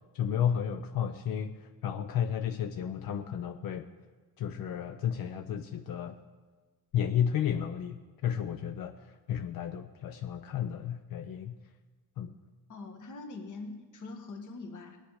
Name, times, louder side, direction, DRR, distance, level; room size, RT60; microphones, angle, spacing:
voice 1, 0.1-3.9 4.4-6.2 6.9-11.6 12.2-12.3, left 9 dB, 75° left, 7 dB, 0.7 m, -32 dB
voice 2, 12.7-15.0, left 3 dB, 60° left, 3 dB, 1.7 m, -43 dB
19.5 x 9.0 x 4.9 m, 1.3 s
cardioid pair, 115°, 35 cm